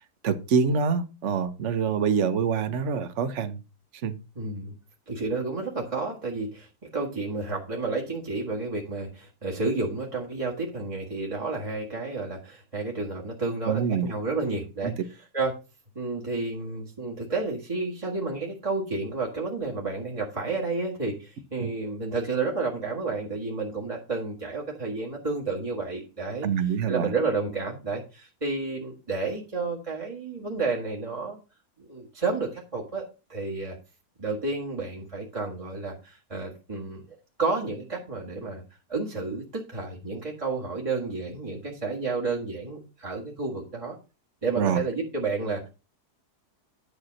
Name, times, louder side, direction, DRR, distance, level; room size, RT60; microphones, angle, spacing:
voice 1, 0.2-3.6 4.0-4.2 13.7-14.1 14.8-14.9 21.6-21.7 26.4-27.1 44.6-44.8, right 6 dB, 50° right, 10 dB, 1.2 m, -25 dB
voice 2, 4.4-4.7 5.1-14.9 15.3-15.6 16.0-31.4 31.8-33.8 34.2-38.6 38.9-44.0 44.4-45.7, right 3 dB, 20° right, -4 dB, 1.8 m, -31 dB
11.0 x 4.2 x 6.4 m, 0.31 s
omnidirectional pair, 1.7 m